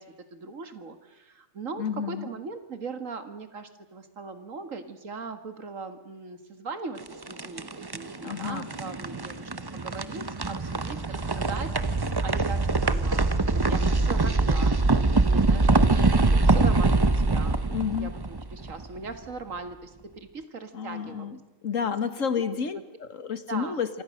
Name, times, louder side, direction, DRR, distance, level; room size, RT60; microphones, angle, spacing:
voice 1, 0.0-14.8 15.2-17.6 18.0-18.1 18.5-21.4 21.8-22.0 22.4-22.6 23.5-23.8, right 4 dB, 80° right, 9 dB, 2.2 m, -39 dB
voice 2, 1.8-2.3 8.2-8.7 17.7-18.1 20.7-21.4 21.6-23.9, left 7 dB, 75° left, 12 dB, 1.9 m, -30 dB
sound 1, 7.0-19.1, right 3 dB, 20° right, 0.8 m, -24 dB
26.5 x 25.0 x 6.6 m, 1.1 s
omnidirectional pair, 1.3 m